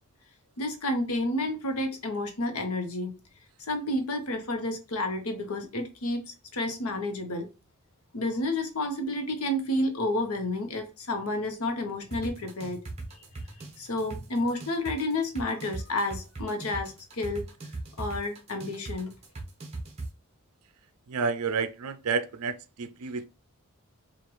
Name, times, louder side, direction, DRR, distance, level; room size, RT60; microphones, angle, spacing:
voice 1, 0.6-3.1 3.7-7.5 8.1-12.9 13.8-17.4 18.0-19.1, left 1 dB, 75° left, 0.9 m, -30 dB
sound 1, 12.1-20.1, right 3 dB, 30° right, 1.0 m, -38 dB
voice 2, 21.1-23.3, right 5 dB, 85° right, 0.4 m, -30 dB
4.7 x 2.4 x 3.0 m
head